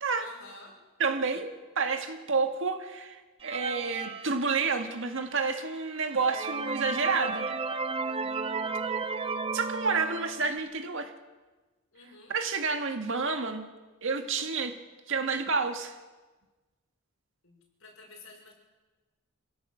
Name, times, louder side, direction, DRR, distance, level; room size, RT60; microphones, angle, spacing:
voice 1, 0.2-0.8 11.9-12.4 17.4-18.5, left 3 dB, 65° left, 0 dB, 6.6 m, -50 dB
voice 2, 1.0-7.6 9.5-11.1 12.3-13.7 14.0-14.7 15.1-16.0, right 4 dB, 60° right, 6 dB, 2.0 m, -29 dB
sound 1, 3.4-5.1 5.6-5.7 6.1-10.6, right 4 dB, 25° right, 0.9 m, -33 dB
26.0 x 17.0 x 7.8 m, 1.2 s
head